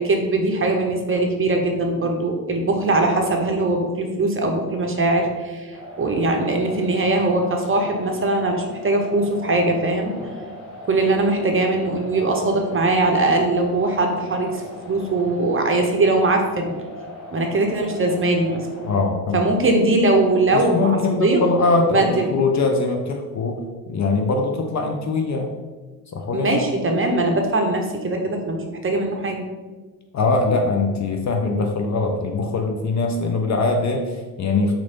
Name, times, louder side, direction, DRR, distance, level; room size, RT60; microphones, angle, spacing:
voice 1, 0.0-10.2 10.8-14.6 14.9-16.7 17.3-18.7 19.3-21.4 21.9-22.3 26.3-29.4, right 2 dB, 25° right, 3 dB, 0.7 m, -21 dB
sound 1, 5.7-19.0, left 1 dB, 75° left, 1.3 m, -39 dB
voice 2, 18.8-19.4 20.5-23.6 23.9-25.5 26.1-26.6 30.1-34.7, left 3 dB, 35° left, 3 dB, 0.5 m, -22 dB
3.0 x 2.6 x 4.3 m, 1.3 s
hypercardioid pair, 50°, 49 cm